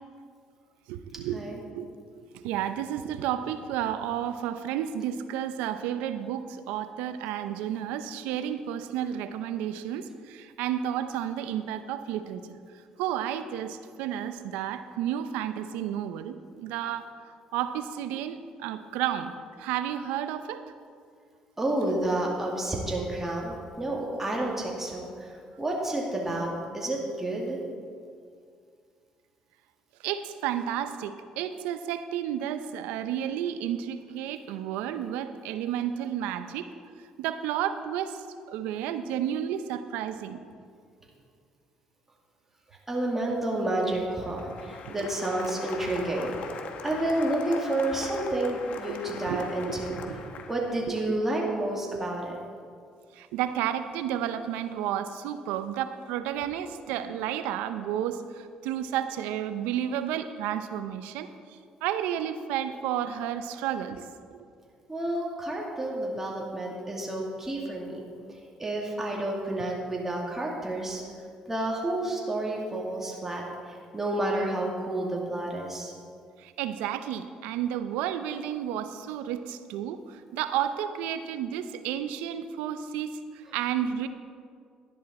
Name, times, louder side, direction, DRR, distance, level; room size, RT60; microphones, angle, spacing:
voice 1, 0.9-1.9 2.3-12.6 13.0-17.1 17.5-20.7 30.0-36.7 37.2-40.4 44.9-45.1 48.9-49.7 50.1-50.2 50.9-51.2 53.1-61.3 61.8-64.1 76.4-84.1, right 10 dB, 90° right, 11 dB, 0.6 m, -32 dB
voice 2, 21.6-25.3 25.6-27.6 42.9-46.6 46.8-50.0 50.5-52.4 64.9-68.1 68.6-71.0 71.5-73.4 73.9-75.9, right 1 dB, 15° right, -2 dB, 2.3 m, -30 dB
Applause, 44.1-51.0, left 5 dB, 65° left, 1.1 m, -41 dB
11.5 x 10.5 x 4.2 m, 2.2 s
supercardioid pair, 80°, 2 cm